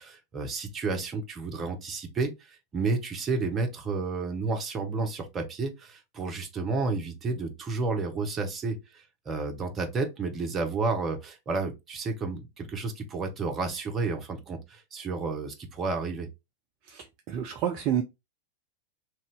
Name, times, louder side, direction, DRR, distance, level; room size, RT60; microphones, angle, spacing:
voice 1, 0.0-16.3, right 3 dB, 25° right, 0.9 m, -31 dB
voice 2, 16.9-18.0, right 9 dB, 40° right, 0.5 m, -29 dB
2.9 x 2.7 x 3.4 m
figure-of-eight pair, 90°, 0 cm